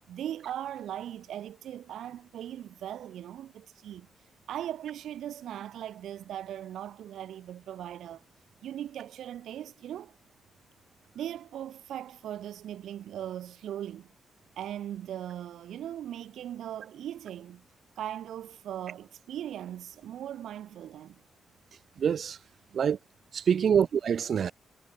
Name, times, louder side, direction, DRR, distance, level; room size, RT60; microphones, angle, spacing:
voice 1, 0.0-4.1 4.5-8.2 8.6-10.1 11.1-14.1 14.6-17.6 18.0-21.2 22.7-22.8, right 11 dB, 90° right, 1.5 m, -39 dB
voice 2, 22.0-22.4 22.7-23.0 23.3-24.5, right 7 dB, 50° right, 0.3 m, -25 dB
wide cardioid pair, 170°, 0 cm